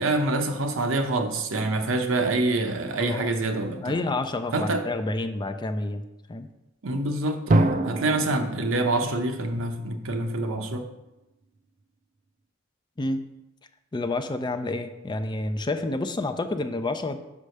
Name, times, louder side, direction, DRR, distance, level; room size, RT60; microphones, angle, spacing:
voice 1, 0.0-4.0 4.5-4.8 6.8-10.8, right 2 dB, 80° right, 6 dB, 0.8 m, -26 dB
voice 2, 3.0-3.3 3.8-6.0 6.3-6.5 13.0-13.2 13.9-17.2, left 2 dB, 20° left, 9 dB, 0.4 m, -29 dB
Drum, 7.5-10.2, right 2 dB, 40° right, 0.5 m, -26 dB
5.6 x 4.8 x 6.5 m, 0.97 s
head